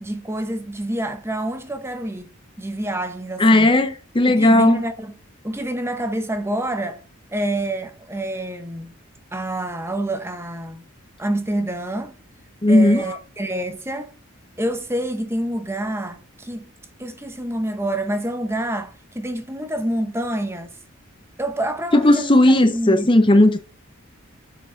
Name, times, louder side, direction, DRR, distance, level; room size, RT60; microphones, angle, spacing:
voice 1, 0.0-2.3 2.6-3.7 4.2-5.1 5.4-7.0 7.3-8.9 9.3-10.8 11.2-12.1 12.7-14.1 14.6-16.7 17.0-20.7 21.4-23.1, right 1 dB, 10° right, 0.8 m, -27 dB
voice 2, 3.4-4.8 12.6-13.0 21.9-23.6, left 1 dB, 25° left, 0.7 m, -15 dB
7.6 x 6.1 x 4.5 m
head